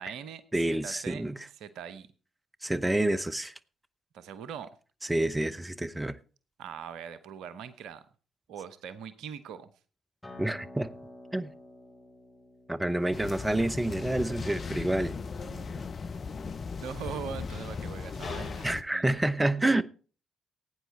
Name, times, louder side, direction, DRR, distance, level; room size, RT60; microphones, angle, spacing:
voice 1, 0.0-2.1 4.1-4.7 6.6-8.1 8.5-9.7 15.3-15.7 16.8-19.2, right 7 dB, 70° right, 0.9 m, -42 dB
voice 2, 0.5-1.4 2.6-3.5 5.0-6.2 10.4-10.9 11.3-11.5 12.7-15.1 18.6-19.8, right 1 dB, 15° right, 0.9 m, -28 dB
Acoustic guitar, 10.2-15.4, left 2 dB, 10° left, 7.2 m, -51 dB
sound 1, 13.1-18.8, left 5 dB, 45° left, 0.9 m, -37 dB
17.0 x 9.1 x 4.4 m
figure-of-eight pair, 40°, 0 cm